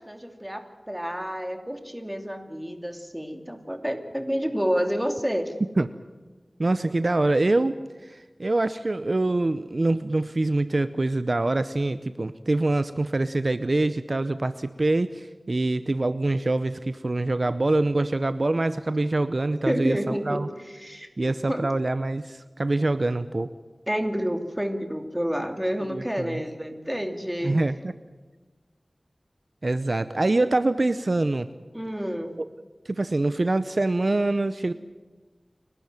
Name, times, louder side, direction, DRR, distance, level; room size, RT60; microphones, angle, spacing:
voice 1, 0.0-5.5 19.6-21.7 23.9-27.6 31.7-32.4, equal, 10° right, 6 dB, 2.7 m, -29 dB
voice 2, 6.6-7.8 8.0-20.5 21.2-23.5 25.9-26.4 27.4-27.9 29.6-31.5 32.9-34.7, right 2 dB, 55° right, 13 dB, 0.7 m, -25 dB
29.5 x 12.5 x 9.1 m, 1.3 s
wide cardioid pair, 65°, 0 cm